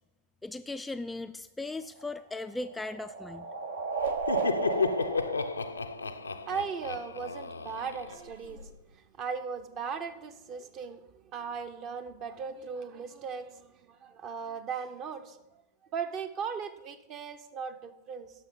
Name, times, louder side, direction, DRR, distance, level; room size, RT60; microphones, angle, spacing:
voice 1, 0.4-3.5, left 2 dB, 5° left, 8 dB, 0.3 m, -38 dB
sound 1, 1.8-6.6, right 5 dB, 65° right, 1.0 m, -35 dB
Laughter, 4.0-8.7, left 4 dB, 75° left, 0.4 m, -33 dB
voice 2, 6.0-15.4 15.9-18.3, right 6 dB, 35° right, 10 dB, 0.9 m, -38 dB
13.0 x 5.6 x 5.4 m, 0.96 s
figure-of-eight pair, 90°, 0 cm